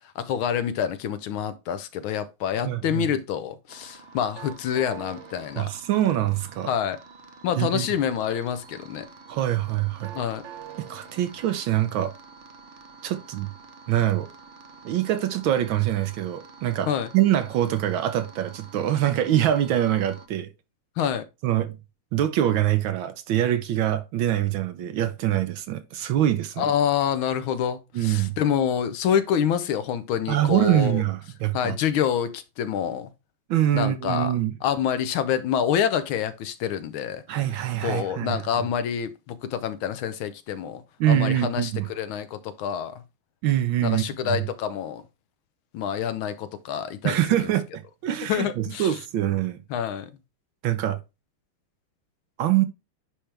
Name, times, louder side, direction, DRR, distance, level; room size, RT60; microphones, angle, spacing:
voice 1, 0.2-5.7 6.7-7.0 7.4-9.1 10.1-10.4 16.9-17.1 21.0-21.2 26.6-31.0 31.5-33.1 33.7-34.3 34.6-37.2 37.8-40.8 41.1-43.0 43.8-45.0 45.7-47.5 48.3-49.0 49.7-50.1, left 9 dB, 75° left, 1.4 m, -27 dB
voice 2, 2.6-3.1 5.6-6.7 7.6-7.9 9.3-10.1 10.9-12.1 13.0-13.5 13.9-14.3 14.8-20.5 21.4-21.8 22.1-26.7 27.9-28.3 30.3-31.8 33.5-34.5 37.3-38.4 41.0-41.9 43.4-44.4 47.0-49.6 50.6-51.0 52.4-52.6, right 12 dB, 70° right, 1.3 m, -24 dB
sound 1, 3.7-20.3, right 5 dB, 90° right, 0.6 m, -47 dB
10.0 x 3.4 x 3.3 m
omnidirectional pair, 2.4 m